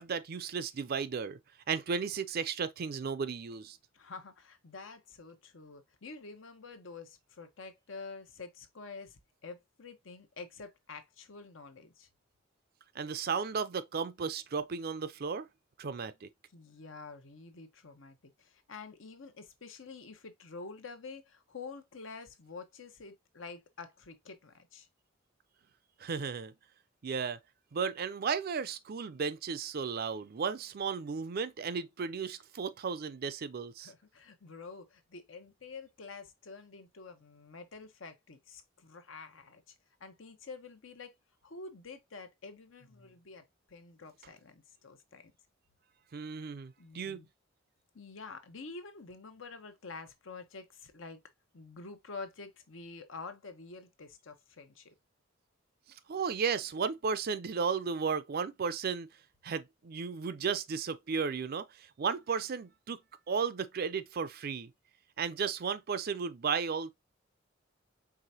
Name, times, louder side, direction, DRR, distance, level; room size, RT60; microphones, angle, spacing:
voice 1, 0.0-1.4 1.7-3.8 12.9-15.5 15.8-16.3 26.0-26.5 27.0-27.4 27.7-33.9 46.1-47.2 56.1-59.1 59.4-63.0 63.3-64.7 65.2-66.9, right 5 dB, 50° right, 0.4 m, -34 dB
voice 2, 3.9-12.1 16.5-24.9 33.8-39.7 40.0-41.1 41.4-45.3 46.8-47.3 47.9-51.2 51.5-54.9, left 4 dB, 75° left, 0.9 m, -48 dB
4.8 x 3.3 x 2.7 m
head